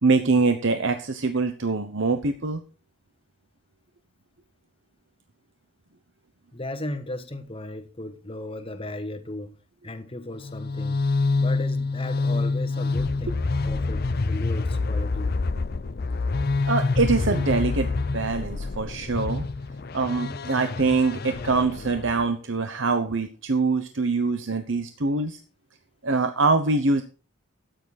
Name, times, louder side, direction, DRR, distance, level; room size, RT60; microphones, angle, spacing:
voice 1, 0.0-2.6 16.7-19.5 19.9-25.4 26.0-27.0, right 3 dB, 60° right, 0.9 m, -24 dB
voice 2, 6.5-9.6 9.8-11.0 11.4-15.3, left 1 dB, 25° left, 1.2 m, -36 dB
sound 1, 10.4-22.2, left 3 dB, 45° left, 0.5 m, -27 dB
13.5 x 9.2 x 4.1 m
head